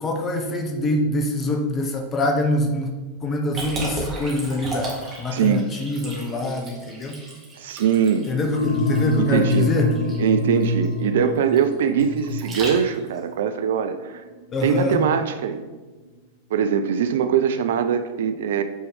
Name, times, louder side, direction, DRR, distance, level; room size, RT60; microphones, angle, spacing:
voice 1, 0.0-2.9 3.2-4.9 5.2-7.2 8.3-10.0 14.5-15.1, left 1 dB, 25° left, 4 dB, 1.0 m, -24 dB
Liquid, 3.5-13.2, right 1 dB, 25° right, 1.8 m, -35 dB
voice 2, 5.3-5.6 7.6-8.3 9.2-9.7 10.2-14.2 14.6-15.6 16.5-18.6, right 7 dB, 60° right, 10 dB, 0.4 m, -22 dB
sound 1, 8.5-15.1, left 2 dB, 90° left, 0.7 m, -26 dB
8.2 x 4.4 x 3.6 m, 1.3 s
figure-of-eight pair, 90°, 0 cm